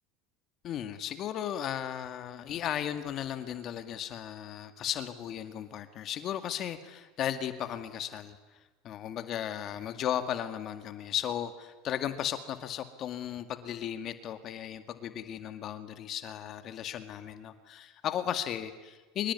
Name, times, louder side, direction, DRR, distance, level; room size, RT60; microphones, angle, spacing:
voice 1, 0.6-8.4 8.8-19.3, left 10 dB, 45° left, 9 dB, 2.0 m, -35 dB
25.5 x 23.0 x 9.6 m, 1.2 s
supercardioid pair, 110°, 0 cm